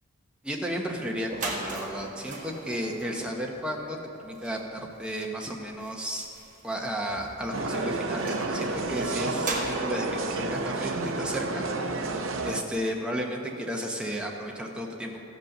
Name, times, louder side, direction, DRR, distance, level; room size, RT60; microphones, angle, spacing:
voice 1, 0.4-6.3 6.6-15.2, equal, 5° right, -1 dB, 0.9 m, -33 dB
sound 1, 1.2-12.0, right 2 dB, 35° right, 1.5 m, -40 dB
sound 2, 7.5-12.6, right 2 dB, 60° right, 0.6 m, -30 dB
15.0 x 5.2 x 6.5 m, 2.7 s
head